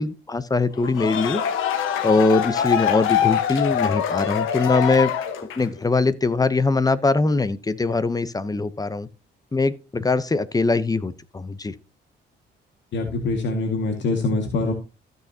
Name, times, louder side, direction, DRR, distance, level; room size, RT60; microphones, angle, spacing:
voice 1, 0.0-1.4 2.0-5.1 5.6-9.1 9.5-11.7, left 3 dB, 20° left, 0.8 m, -22 dB
sound 1, 0.8-5.8, left 9 dB, 90° left, 1.3 m, -24 dB
voice 2, 12.9-14.7, left 3 dB, 65° left, 1.9 m, -24 dB
14.5 x 6.7 x 2.8 m
cardioid pair, 90°, 20 cm